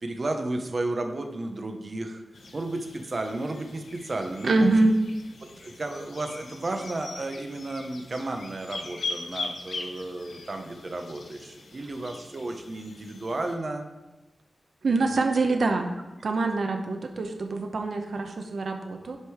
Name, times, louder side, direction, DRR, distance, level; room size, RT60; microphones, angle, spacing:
voice 1, 0.0-2.2 2.5-4.7 5.4-13.9 14.9-15.2, right 2 dB, 35° right, 5 dB, 1.0 m, -33 dB
sound 1, 2.3-13.6, left 3 dB, 75° left, 1.0 m, -41 dB
voice 2, 4.4-4.9 14.8-15.9 16.2-19.2, right 3 dB, 60° right, 4 dB, 0.9 m, -25 dB
9.6 x 5.3 x 4.9 m, 1.1 s
wide cardioid pair, 150°, 0 cm